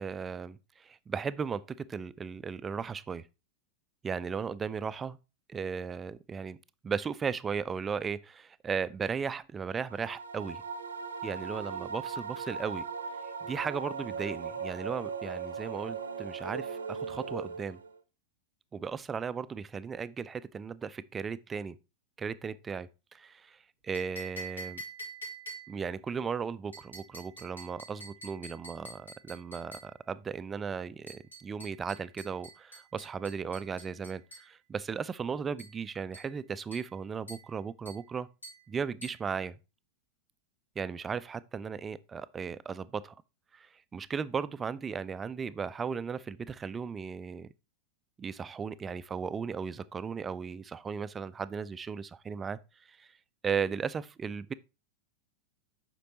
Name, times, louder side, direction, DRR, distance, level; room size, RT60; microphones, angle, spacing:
voice 1, 0.0-3.3 4.0-5.2 5.5-6.6 6.8-10.6 11.2-12.9 13.4-17.8 18.7-21.8 22.2-24.8 25.7-38.3 38.7-39.6 40.8-43.2 43.5-47.5 48.2-53.1 53.4-54.5, right 6 dB, 20° right, 0.4 m, -36 dB
sound 1, 9.8-18.0, right 5 dB, 70° right, 0.7 m, -38 dB
sound 2, 23.9-25.9 26.7-30.0 31.1-34.5 35.6-35.8 36.1-36.4 36.7-37.0 37.3-37.5 37.9-38.1 38.4-38.7 39.0-39.3, right 2 dB, 80° left, 2.9 m, -47 dB
8.3 x 5.9 x 2.9 m
figure-of-eight pair, 90°, 0 cm